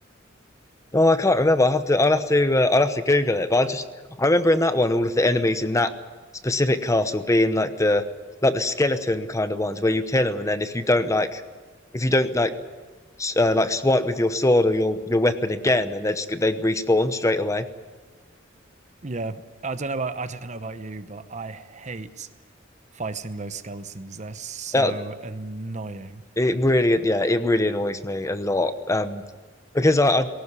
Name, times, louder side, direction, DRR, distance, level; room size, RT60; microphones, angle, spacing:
voice 1, 0.9-3.8 4.2-5.9 6.4-8.0 8.4-11.4 11.9-12.5 13.2-17.7 24.7-24.9 26.4-29.2 29.7-30.3, left 1 dB, 15° left, 10 dB, 0.9 m, -21 dB
voice 2, 19.0-22.3 22.9-26.2, right 3 dB, 40° right, 11 dB, 0.9 m, -33 dB
19.5 x 18.0 x 9.8 m, 1.4 s
head